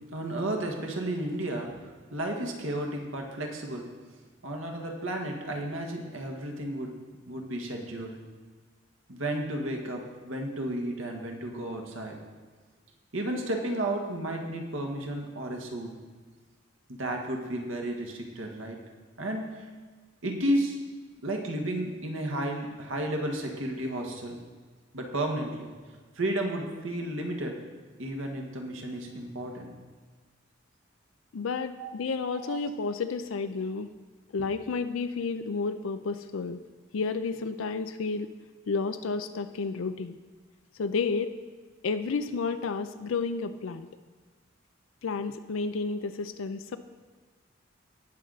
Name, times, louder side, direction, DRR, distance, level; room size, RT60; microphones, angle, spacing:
voice 1, 0.1-1.7 2.1-3.9 4.4-6.9 7.2-8.2 9.1-12.2 13.1-15.9 16.9-18.8 19.2-19.7 20.2-20.8 21.2-24.4 24.9-25.7 26.1-27.6 28.0-29.7 31.8-31.9 32.3-32.6, right 1 dB, 80° right, 2 dB, 1.6 m, -32 dB
voice 2, 31.3-33.9 34.3-36.6 36.9-38.3 38.7-40.2 40.8-41.3 41.8-43.9 45.0-46.8, left 4 dB, 85° left, 10 dB, 0.5 m, -31 dB
18.5 x 6.4 x 4.0 m, 1.4 s
head